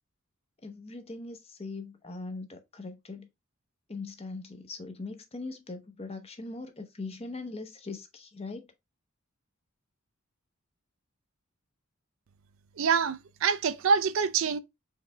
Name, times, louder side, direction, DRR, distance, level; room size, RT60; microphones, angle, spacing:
voice 1, 0.6-3.3 3.9-8.7, left 3 dB, 30° left, 0.8 m, -40 dB
voice 2, 12.8-14.6, right 6 dB, 65° right, 0.4 m, -26 dB
4.7 x 3.3 x 3.3 m
head